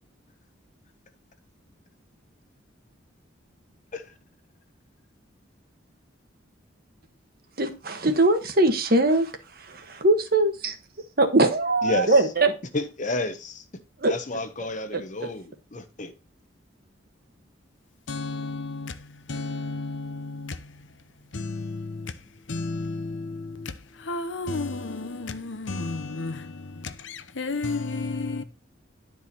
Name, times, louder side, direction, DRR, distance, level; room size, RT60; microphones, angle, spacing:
voice 1, 7.6-9.3 9.7-10.8 11.2-12.5 14.0-14.1 14.9-15.0, right 2 dB, 50° right, 1.2 m, -21 dB
voice 2, 11.8-12.2 12.7-13.6 14.1-16.1, left 2 dB, 40° left, 1.0 m, -31 dB
voice 3, 18.1-20.9 21.3-28.4, left 3 dB, 75° left, 0.9 m, -33 dB
11.0 x 4.8 x 4.2 m
head